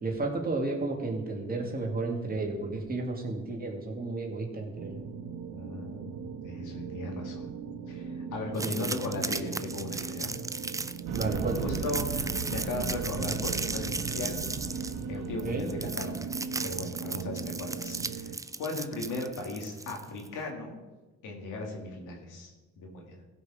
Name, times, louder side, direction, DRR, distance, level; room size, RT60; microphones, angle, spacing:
voice 1, 0.0-5.0 8.6-8.9 11.1-11.7 15.4-15.7, right 3 dB, 30° right, 0 dB, 2.4 m, -32 dB
sound 1, 4.8-18.4, right 5 dB, 65° right, 0.8 m, -39 dB
voice 2, 5.5-7.5 7.9-10.3 11.6-14.4 14.7-16.3 16.6-20.8 21.2-23.2, left 2 dB, 85° left, 1 dB, 2.3 m, -37 dB
sound 2, 8.5-20.3, right 3 dB, 10° right, 0.4 m, -36 dB
sound 3, 11.1-16.9, right 5 dB, 90° right, 1.2 m, -37 dB
16.0 x 5.3 x 5.0 m, 1.2 s
cardioid pair, 90°, 30 cm